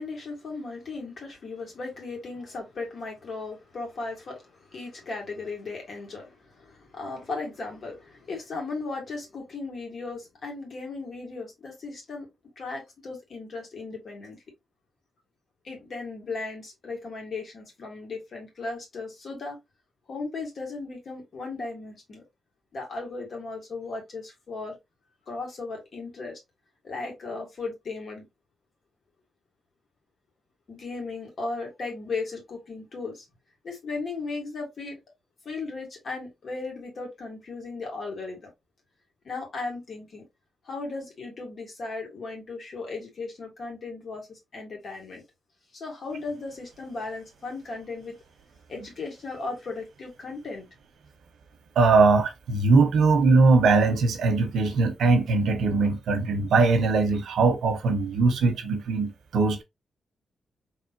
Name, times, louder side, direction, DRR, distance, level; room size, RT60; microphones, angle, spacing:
voice 1, 0.0-12.3 12.6-14.4 15.6-19.6 20.1-22.2 22.7-24.8 25.3-26.4 26.8-28.3 30.7-33.2 33.6-35.0 35.4-38.5 39.2-40.3 40.6-45.2 45.7-48.2 48.7-50.7, left 3 dB, 45° left, 2.0 m, -36 dB
voice 2, 51.8-59.6, right 3 dB, 85° right, 1.0 m, -21 dB
4.2 x 3.1 x 2.7 m
wide cardioid pair, 180°, 0 cm